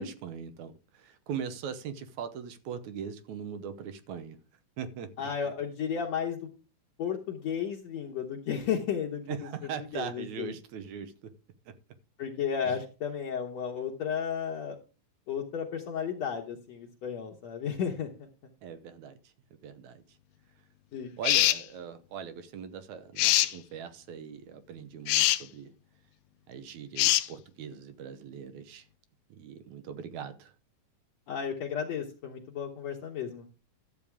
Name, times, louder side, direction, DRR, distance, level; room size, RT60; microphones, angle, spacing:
voice 1, 0.0-4.4 4.8-5.3 9.3-11.3 11.7-11.8 12.6-12.8 18.6-19.2 19.6-20.0 21.2-25.7 26.5-28.9 29.3-30.5, right 7 dB, 70° right, 2.1 m, -40 dB
voice 2, 5.2-6.5 7.0-9.5 9.9-10.5 12.2-14.8 15.3-18.3 20.9-21.1 31.3-33.4, left 7 dB, 60° left, 2.2 m, -33 dB
sound 1, 21.2-21.6 23.2-23.5 25.1-25.4 27.0-27.3, left 15 dB, 90° left, 2.4 m, -23 dB
12.5 x 8.4 x 3.5 m
omnidirectional pair, 3.8 m